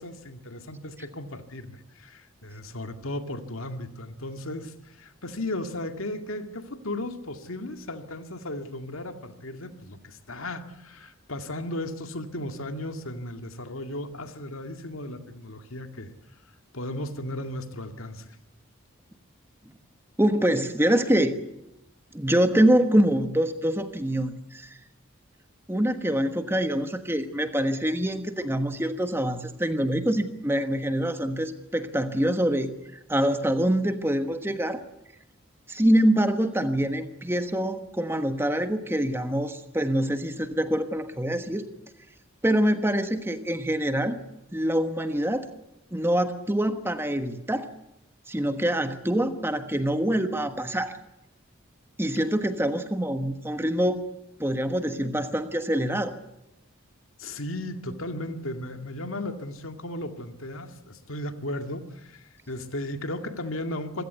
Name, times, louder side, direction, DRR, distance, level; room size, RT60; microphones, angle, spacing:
voice 1, 0.0-16.1 16.7-18.4 57.2-64.0, left 1 dB, 80° left, 7 dB, 2.1 m, -35 dB
voice 2, 20.2-21.3 22.1-24.8 25.7-32.7 33.1-34.8 35.7-41.7 42.4-44.2 44.5-45.5 45.9-47.7 48.3-50.9 52.0-54.0 54.4-56.1, right 1 dB, 10° right, 9 dB, 1.3 m, -25 dB
26.5 x 16.0 x 8.1 m, 0.90 s
head